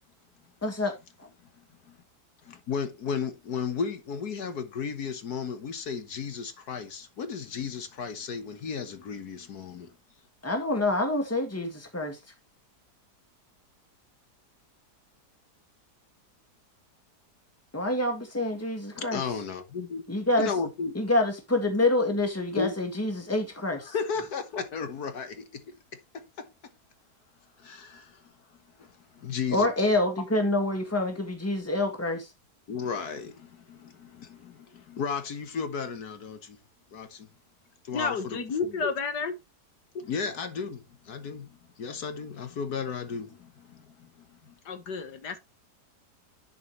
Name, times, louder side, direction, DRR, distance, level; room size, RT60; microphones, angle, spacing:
voice 1, 0.6-0.9 1.2-1.3 10.4-12.2 17.7-19.2 20.1-20.5 20.9-23.9 29.5-32.3, left 2 dB, 10° left, 1.8 m, -27 dB
voice 2, 1.6-2.0 2.4-9.9 18.9-20.0 20.4-21.0 22.6-22.8 23.8-25.8 26.1-26.7 27.6-28.3 28.8-29.7 32.7-36.6 36.9-37.3 37.8-38.8 39.9-44.5, left 6 dB, 70° left, 1.7 m, -35 dB
voice 3, 37.9-39.4 44.7-45.4, left 4 dB, 90° left, 2.0 m, -31 dB
11.0 x 5.8 x 3.1 m
omnidirectional pair, 1.8 m